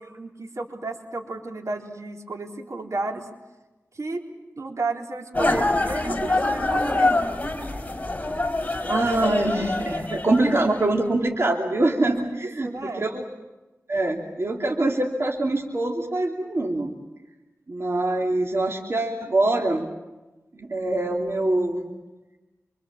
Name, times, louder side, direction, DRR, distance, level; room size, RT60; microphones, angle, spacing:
voice 1, 0.2-3.3 3.9-4.2 4.6-7.2 12.1-13.1, right 3 dB, 70° right, 2 dB, 3.8 m, -33 dB
sound 1, 5.3-10.9, left 2 dB, 25° left, 4.3 m, -25 dB
voice 2, 8.9-13.2 13.9-17.0 17.7-19.9 20.5-21.9, right 2 dB, 50° right, 0 dB, 3.0 m, -24 dB
27.5 x 25.0 x 7.4 m, 1.1 s
wide cardioid pair, 70°, 5 cm